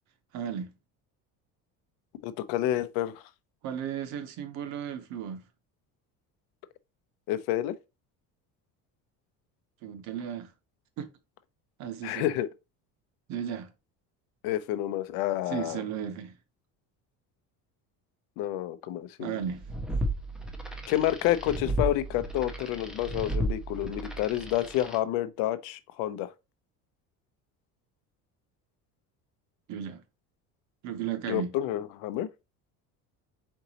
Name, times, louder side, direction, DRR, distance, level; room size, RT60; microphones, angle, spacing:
voice 1, 0.3-0.7 3.6-5.4 9.8-10.5 11.0-11.1 11.8-12.3 13.3-13.7 15.5-16.3 19.2-19.6 29.7-30.0 30.8-31.5, right 8 dB, 55° right, 0.8 m, -35 dB
voice 2, 2.2-3.2 7.3-7.7 12.0-12.5 14.4-15.8 18.4-19.4 20.9-26.3 31.3-32.3, left 13 dB, 80° left, 0.6 m, -29 dB
sound 1, 19.5-25.0, right 1 dB, ahead, 0.3 m, -33 dB
4.5 x 3.9 x 2.8 m
cardioid pair, 180°, 34 cm